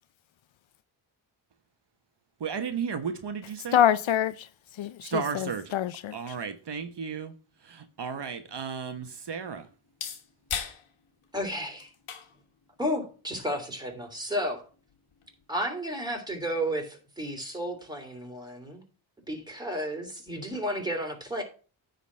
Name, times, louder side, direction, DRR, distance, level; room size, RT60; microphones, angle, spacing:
voice 1, 2.4-3.8 5.1-5.6 6.1-7.3 7.7-9.6, right 6 dB, 55° right, 1.2 m, -34 dB
voice 2, 3.7-4.3 4.8-6.2, left 10 dB, 70° left, 0.6 m, -25 dB
sound 1, 7.5-15.5, left 8 dB, 85° left, 1.5 m, -43 dB
voice 3, 11.3-11.9 12.8-14.6 15.5-18.8 19.3-21.4, equal, 10° right, 3.2 m, -32 dB
9.7 x 4.1 x 7.4 m
cardioid pair, 80°, 49 cm